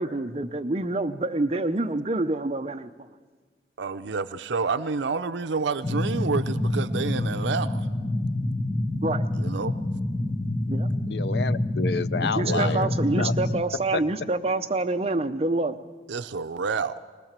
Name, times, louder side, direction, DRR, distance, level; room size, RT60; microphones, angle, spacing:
voice 1, 0.0-2.9 9.0-9.3 10.7-10.9 12.2-15.8, right 2 dB, 35° right, 0.7 m, -27 dB
voice 2, 3.8-7.9 9.3-9.8 12.4-12.8 16.1-16.9, right 4 dB, 80° right, 0.6 m, -29 dB
sound 1, 5.8-13.6, left 1 dB, 20° left, 1.1 m, -27 dB
voice 3, 11.1-13.3 13.9-14.0, left 4 dB, 65° left, 0.5 m, -29 dB
20.5 x 19.5 x 7.4 m
head